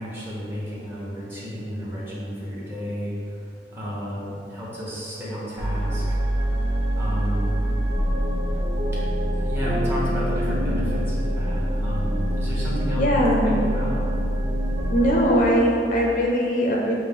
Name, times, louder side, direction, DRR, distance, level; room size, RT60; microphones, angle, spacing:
voice 1, 0.0-3.1 3.7-6.2 6.9-7.5 9.3-14.1 15.0-15.1, equal, 15° right, -8 dB, 1.1 m, -32 dB
sound 1, 5.6-15.4, equal, 85° right, 0.7 m, -25 dB
voice 2, 13.0-13.6 14.9-16.9, equal, 50° left, -2 dB, 0.6 m, -20 dB
6.5 x 2.2 x 3.7 m, 2.5 s
head